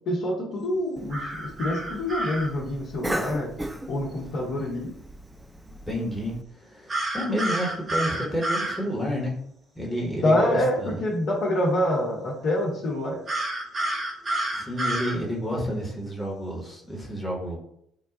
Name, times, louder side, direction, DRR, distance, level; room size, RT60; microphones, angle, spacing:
voice 1, 0.1-3.5 3.9-4.9 10.2-13.2, left 1 dB, 55° left, -3 dB, 1.0 m, -26 dB
Cough, 1.0-6.4, right 1 dB, 10° right, 0.3 m, -37 dB
sound 1, 1.1-2.5 6.9-8.8 13.3-15.2, right 1 dB, 35° right, 0.8 m, -29 dB
voice 2, 5.7-6.3 6.6-9.3 9.7-11.0 14.5-17.6, equal, 10° left, -2 dB, 1.2 m, -30 dB
3.8 x 2.3 x 3.8 m, 0.71 s
figure-of-eight pair, 50°, 0 cm